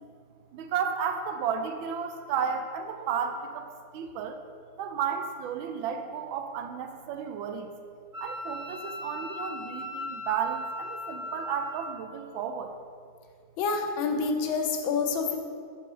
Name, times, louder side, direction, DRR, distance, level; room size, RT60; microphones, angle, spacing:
voice 1, 0.5-4.4 4.8-7.7 8.2-12.8, right 7 dB, 85° right, 7 dB, 1.4 m, -33 dB
Wind instrument woodwind instrument, 8.1-11.9, left 2 dB, 45° right, 1.7 m, -38 dB
voice 2, 13.6-15.4, left 5 dB, 85° left, 4 dB, 1.5 m, -27 dB
5.4 x 4.2 x 6.1 m, 2.2 s
omnidirectional pair, 2.1 m